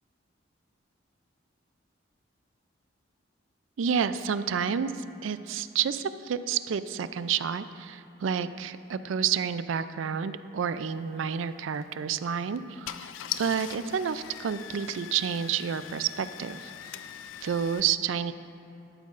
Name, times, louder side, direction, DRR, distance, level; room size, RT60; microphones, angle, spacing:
voice 1, 3.8-16.7 17.4-18.3, right 7 dB, 85° right, 13 dB, 0.4 m, -30 dB
Car / Engine starting, 11.7-12.0 12.6-12.7 12.8-17.8, left 11 dB, 85° left, 0.3 m, -41 dB
12.5 x 12.5 x 2.5 m, 3.0 s
head